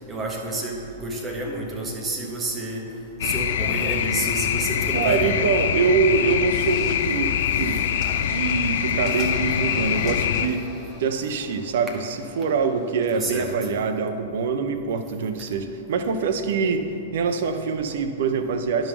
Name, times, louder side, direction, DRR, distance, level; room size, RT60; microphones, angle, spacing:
voice 1, 0.1-2.8 3.2-5.5 13.1-13.5, right 2 dB, 20° right, 0 dB, 1.2 m, -29 dB
sound 1, 3.2-10.5, left 9 dB, 65° left, 0.4 m, -24 dB
voice 2, 4.9-7.8 8.2-10.7 11.0-16.8 17.1-18.9, right 5 dB, 65° right, 8 dB, 0.6 m, -24 dB
sound 2, 6.2-13.4, left 3 dB, 30° left, 1.2 m, -43 dB
10.5 x 3.9 x 6.1 m, 2.7 s
figure-of-eight pair, 105°, 0 cm